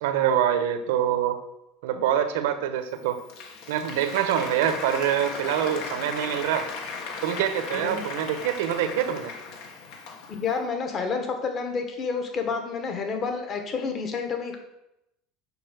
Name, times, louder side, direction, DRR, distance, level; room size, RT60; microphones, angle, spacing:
voice 1, 0.0-1.4 1.8-3.2 3.7-6.7 7.2-9.3, right 10 dB, 85° right, 9 dB, 1.0 m, -25 dB
Applause, 2.9-10.5, left 4 dB, 60° left, 1.5 m, -37 dB
voice 2, 7.7-8.0 10.3-14.6, left 5 dB, 35° left, 5 dB, 1.5 m, -29 dB
6.8 x 5.4 x 6.6 m, 0.86 s
supercardioid pair, 145°, 0 cm